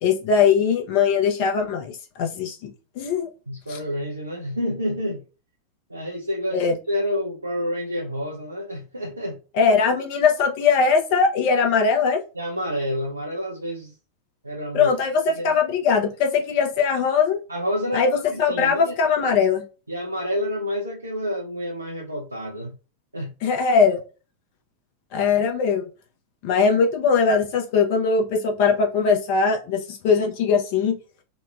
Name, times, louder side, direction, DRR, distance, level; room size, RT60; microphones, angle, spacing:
voice 1, 0.0-1.9 2.2-2.7 3.0-3.3 3.7-3.8 6.5-6.7 9.5-12.2 14.7-17.4 17.9-18.1 18.4-19.6 23.4-24.0 25.1-25.9 26.4-30.9, left 5 dB, 45° left, 2 dB, 0.7 m, -20 dB
voice 2, 3.5-5.2 5.9-9.4 12.3-14.0 14.4-14.9 15.4-15.5 17.5-18.9 19.9-22.8 23.1-23.3, equal, 80° right, -1 dB, 0.4 m, -29 dB
2.9 x 2.2 x 2.3 m, 0.34 s
figure-of-eight pair, 90°, 0 cm